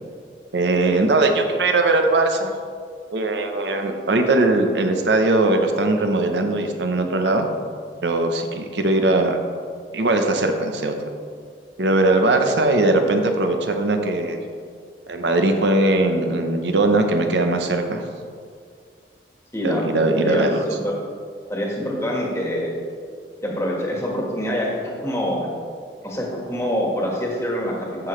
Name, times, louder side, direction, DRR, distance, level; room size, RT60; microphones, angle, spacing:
voice 1, 0.5-2.5 3.1-7.5 8.0-9.4 9.9-10.9 11.8-14.4 15.1-18.0 19.6-20.6, right 2 dB, 75° right, 5 dB, 0.8 m, -20 dB
voice 2, 19.5-19.9 20.2-20.5 20.8-20.9 21.5-22.7 23.4-25.5 26.0-28.1, equal, 15° left, -2 dB, 1.5 m, -25 dB
14.5 x 5.8 x 3.2 m, 2.1 s
head